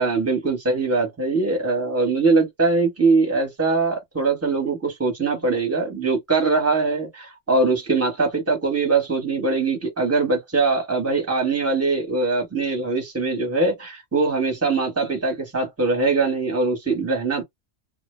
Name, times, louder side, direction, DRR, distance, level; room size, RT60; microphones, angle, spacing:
voice 1, 0.0-17.4, right 3 dB, 15° right, 0.8 m, -22 dB
2.1 x 2.0 x 3.0 m
omnidirectional pair, 1.2 m